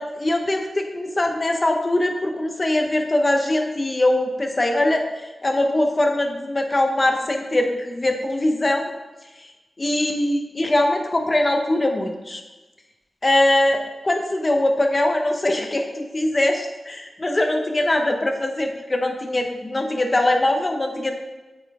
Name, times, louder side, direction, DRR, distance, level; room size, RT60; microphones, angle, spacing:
voice 1, 0.0-8.9 9.8-12.4 13.2-21.1, left 1 dB, 25° left, 3 dB, 0.9 m, -22 dB
8.9 x 5.6 x 3.6 m, 1.1 s
wide cardioid pair, 160°, 0 cm